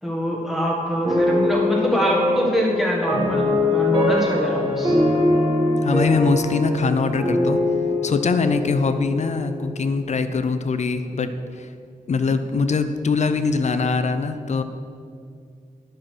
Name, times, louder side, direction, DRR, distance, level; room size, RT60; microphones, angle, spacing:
voice 1, 0.0-5.0, equal, ahead, -4 dB, 1.6 m, -24 dB
sound 1, 1.0-10.2, left 2 dB, 40° right, 1.9 m, -23 dB
voice 2, 5.8-7.6 8.0-11.7 12.1-14.6, left 4 dB, 55° left, 10 dB, 0.5 m, -22 dB
10.0 x 6.3 x 4.5 m, 2.3 s
wide cardioid pair, 135°, 14 cm